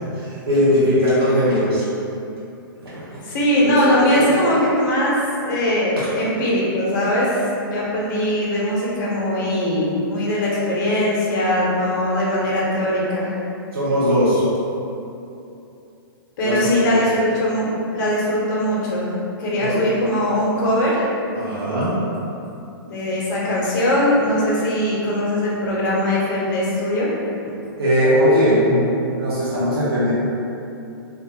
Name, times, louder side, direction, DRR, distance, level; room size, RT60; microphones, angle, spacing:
voice 1, 0.1-1.9 2.8-3.2 3.6-4.3 13.7-14.4 16.4-17.0 19.6-19.8 21.3-22.0 27.8-30.1, equal, 85° right, -11 dB, 0.8 m, -19 dB
voice 2, 3.2-5.2 5.4-13.3 16.4-17.7 17.9-19.1 19.4-21.1 22.8-27.1, left 1 dB, 50° left, -6 dB, 0.8 m, -20 dB
2.4 x 2.3 x 2.8 m, 2.7 s
hypercardioid pair, 140°, 12 cm